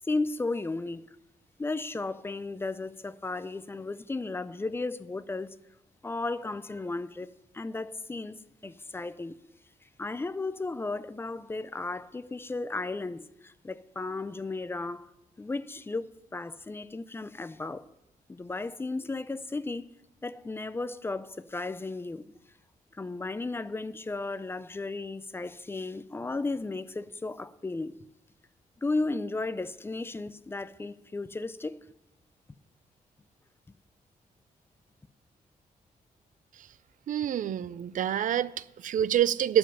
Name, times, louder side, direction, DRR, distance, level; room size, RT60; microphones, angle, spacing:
voice 1, 0.1-1.1 1.6-5.5 6.0-9.4 10.0-15.1 15.4-16.1 16.3-17.9 18.3-19.8 20.2-22.2 23.0-27.9 28.8-31.8, left 3 dB, 15° left, 0.4 m, -34 dB
voice 2, 37.1-39.6, right 10 dB, 65° right, 0.4 m, -27 dB
12.5 x 5.3 x 8.7 m
wide cardioid pair, 145°, 15 cm